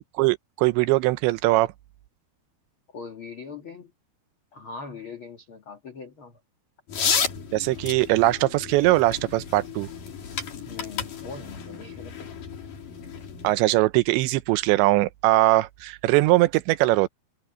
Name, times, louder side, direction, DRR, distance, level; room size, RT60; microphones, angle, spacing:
voice 1, 0.0-1.7 7.5-9.9 13.4-17.1, right 18 dB, 80° right, 2.9 m, -21 dB
voice 2, 2.9-3.9 4.5-6.4 10.6-12.3, left 4 dB, 65° left, 1.3 m, -41 dB
sound 1, 6.9-13.5, left 6 dB, 50° left, 4.5 m, -32 dB
omnidirectional pair, 5.4 m